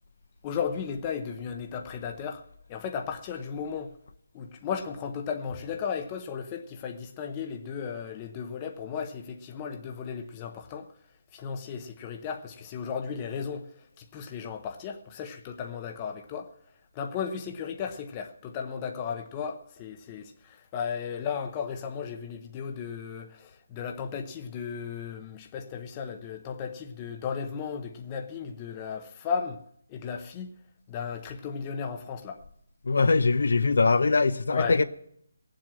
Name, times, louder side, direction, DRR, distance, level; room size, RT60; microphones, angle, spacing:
voice 1, 0.4-2.4 2.7-3.9 4.3-10.9 11.3-13.7 14.0-16.5 16.9-29.6 29.9-30.5 30.9-32.4 34.5-34.8, left 6 dB, 15° left, 0.7 m, -35 dB
voice 2, 32.8-34.8, left 4 dB, 55° left, 0.6 m, -22 dB
17.5 x 7.6 x 7.5 m
hypercardioid pair, 180°, 0 cm